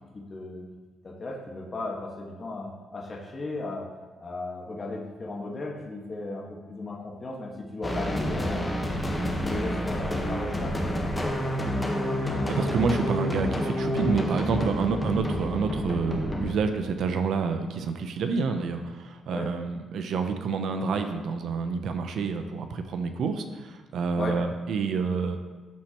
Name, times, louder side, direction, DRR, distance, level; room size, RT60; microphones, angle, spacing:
voice 1, 0.1-0.6 1.0-3.9 4.2-8.9 9.4-11.6 19.3-19.5 24.2-24.4, left 2 dB, 35° left, -2 dB, 1.5 m, -36 dB
sound 1, 7.8-16.6, equal, 15° left, 1.2 m, -29 dB
voice 2, 12.5-25.4, right 5 dB, 70° right, 7 dB, 0.6 m, -28 dB
13.0 x 4.4 x 3.0 m, 1.4 s
cardioid pair, 90°, 0 cm